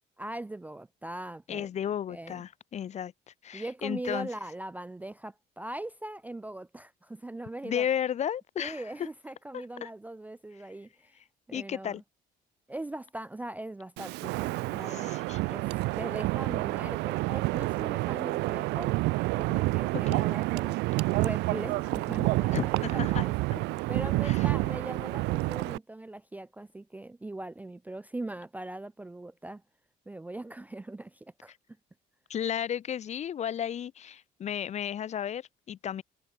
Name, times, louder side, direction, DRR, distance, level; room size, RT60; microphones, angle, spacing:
voice 1, 0.2-1.7 2.1-2.4 3.5-7.9 8.6-11.1 11.5-12.0 12.7-15.1 15.5-19.0 19.4-20.8 21.1-23.3 23.9-29.6 30.1-31.5, right 1 dB, 10° right, 0.4 m, -40 dB
voice 2, 1.5-3.1 3.4-4.3 7.6-8.8 9.5-9.9 11.5-12.0 14.9-15.4 20.1-20.2 22.5-23.2 23.5-23.6 24.2-24.4 32.3-36.0, left 9 dB, 40° left, 0.6 m, -33 dB
Wind, 14.0-25.8, right 22 dB, 90° right, 0.5 m, -29 dB
cardioid pair, 110°, 17 cm